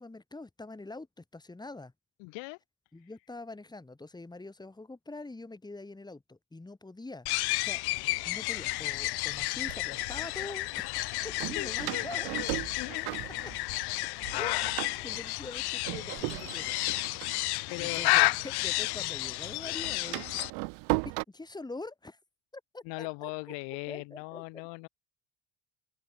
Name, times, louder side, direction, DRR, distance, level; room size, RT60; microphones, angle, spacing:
voice 1, 0.0-1.9 2.9-7.8 8.2-12.3 13.2-14.0 14.3-14.8 15.0-16.9 17.8-20.4 20.9-22.2 22.7-23.3 23.9-24.4, left 2 dB, 10° left, 4.0 m, -44 dB
voice 2, 2.2-2.6 11.5-12.1 12.4-12.5 12.8-13.1 13.6-14.0 17.7-18.1 18.5-18.7 22.8-24.9, left 30 dB, 85° left, 1.9 m, -40 dB
sound 1, 7.3-20.5, left 21 dB, 65° left, 0.9 m, -31 dB
Door, 8.2-8.3 9.1-10.2 11.4-14.0 14.2-18.8 19.0-21.2, right 37 dB, 90° right, 1.4 m, -37 dB
open air
cardioid pair, 125°, 41 cm